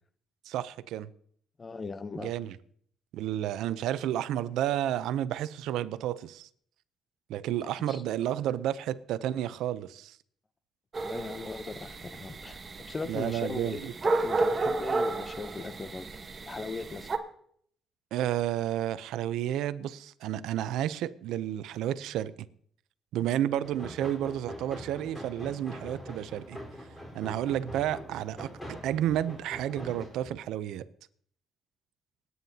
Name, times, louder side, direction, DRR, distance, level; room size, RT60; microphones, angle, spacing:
voice 1, 0.5-1.1 2.2-2.6 3.1-6.5 7.3-10.2 13.1-13.9 18.1-22.3 23.1-26.6 27.1-30.8, right 11 dB, 90° right, 0.5 m, -31 dB
voice 2, 1.6-2.3 7.9-8.0 11.0-12.6 12.9-16.1 16.4-17.1, left 4 dB, 30° left, 0.7 m, -38 dB
sound 1, 10.9-17.2, right 3 dB, 35° right, 1.2 m, -32 dB
sound 2, 23.6-30.3, equal, 15° left, 4.2 m, -43 dB
27.0 x 9.4 x 2.8 m
cardioid pair, 90°, 0 cm